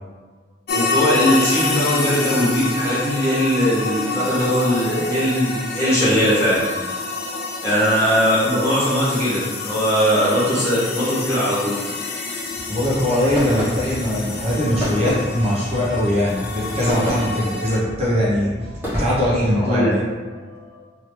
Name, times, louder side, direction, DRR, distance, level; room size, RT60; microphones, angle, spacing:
sound 1, 0.7-17.8, left 3 dB, 60° left, 0.4 m, -28 dB
voice 1, 0.7-6.6 7.6-11.7 19.6-19.9, equal, 15° left, -10 dB, 1.3 m, -20 dB
voice 2, 7.0-7.5 12.7-19.9 20.3-20.8, left 1 dB, 35° right, -7 dB, 0.8 m, -22 dB
sound 2, 12.3-19.4, equal, 10° right, 1.2 m, -30 dB
2.9 x 2.8 x 3.1 m, 1.3 s
head